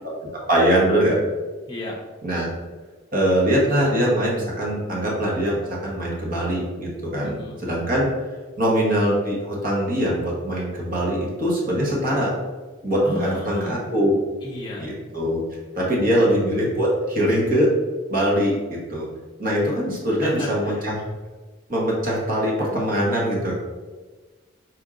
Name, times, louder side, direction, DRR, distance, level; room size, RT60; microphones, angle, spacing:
voice 1, 0.3-1.2 2.2-2.5 3.1-7.3 7.6-8.1 8.6-12.3 12.8-14.2 14.8-15.4 15.7-17.7 18.1-19.1 19.4-21.0 21.7-23.5, equal, 40° right, -4 dB, 1.1 m, -22 dB
voice 2, 7.2-7.6 13.0-13.7 14.4-14.8 20.2-20.8, left 1 dB, 20° left, -2 dB, 0.7 m, -32 dB
4.5 x 2.6 x 3.6 m, 1.3 s
head